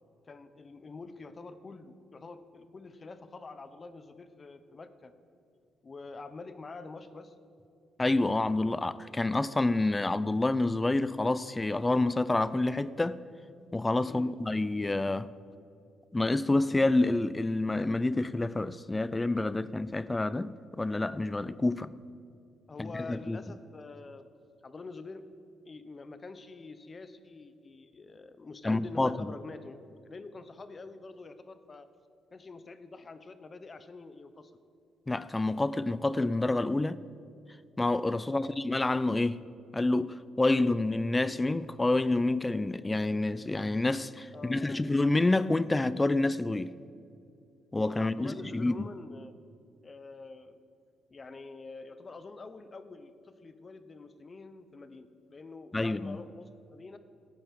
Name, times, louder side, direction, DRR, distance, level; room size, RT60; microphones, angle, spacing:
voice 1, 0.3-5.1 5.8-7.3 14.0-14.3 22.7-24.3 24.6-25.2 25.6-31.9 32.3-34.5 38.2-38.5 44.3-44.8 48.0-49.3 49.8-50.6 51.1-57.0, left 3 dB, 35° left, 0.9 m, -46 dB
voice 2, 8.0-13.2 13.7-15.3 16.1-21.9 22.8-23.4 28.6-29.1 35.1-37.0 37.8-39.4 39.7-46.7 47.7-48.7 55.7-56.2, left 2 dB, 15° left, 0.4 m, -28 dB
13.5 x 8.7 x 7.6 m
cardioid pair, 90°, 0 cm